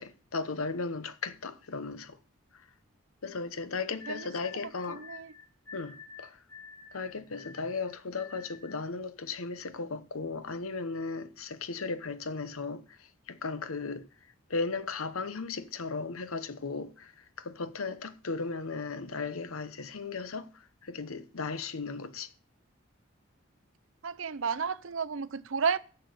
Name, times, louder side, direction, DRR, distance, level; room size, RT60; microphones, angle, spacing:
voice 1, 0.0-2.2 3.2-5.0 5.7-6.4 6.9-14.1 14.5-20.5 20.8-22.3, left 4 dB, 90° left, 1.0 m, -36 dB
sound 1, 4.0-8.9, left 6 dB, 75° left, 2.5 m, -49 dB
voice 2, 4.9-5.3 24.0-25.8, right 5 dB, 75° right, 0.6 m, -32 dB
12.0 x 6.9 x 6.8 m
head